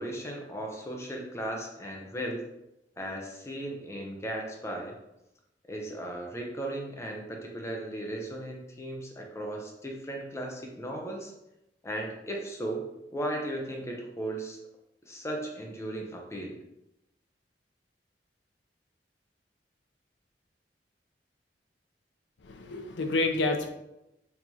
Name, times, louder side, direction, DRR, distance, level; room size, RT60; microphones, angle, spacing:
voice 1, 0.0-2.4 3.0-5.0 5.7-11.3 11.8-12.8 13.1-14.6 15.0-16.6, right 1 dB, 15° left, 0 dB, 0.6 m, -36 dB
voice 2, 22.4-23.7, left 2 dB, 85° left, 5 dB, 0.5 m, -28 dB
4.5 x 2.9 x 2.7 m, 0.89 s
head